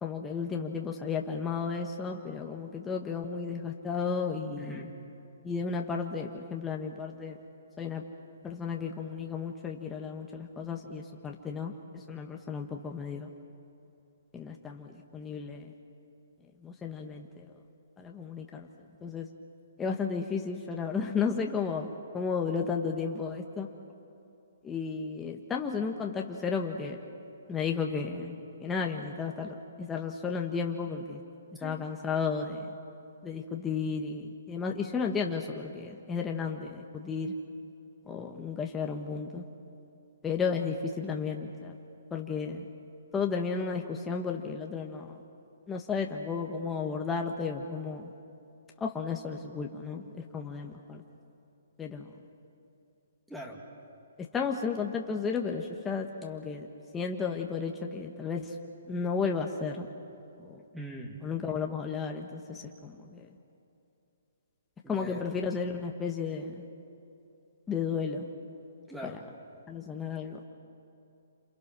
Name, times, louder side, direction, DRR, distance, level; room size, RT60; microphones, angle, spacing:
voice 1, 0.0-4.8 5.4-7.4 7.8-8.0 8.4-13.3 14.3-15.7 16.6-17.5 18.0-18.7 19.0-19.3 19.8-23.7 24.6-27.0 27.5-31.2 31.6-32.7 33.2-37.4 38.1-39.4 40.2-41.8 42.1-42.6 43.1-45.2 45.7-48.1 48.8-51.0 51.8-52.1 54.2-58.6 58.9-59.9 60.4-60.6 61.2-63.3 64.9-66.6 67.7-68.3 69.0-69.2 69.7-70.4, left 5 dB, 10° left, 1 dB, 1.5 m, -33 dB
voice 2, 4.6-5.0 31.5-31.8 53.3-53.6 60.7-61.2 64.8-65.4 68.9-69.2, right 1 dB, 5° right, 0 dB, 2.5 m, -42 dB
28.5 x 27.5 x 6.2 m, 2.7 s
hypercardioid pair, 145°, 0 cm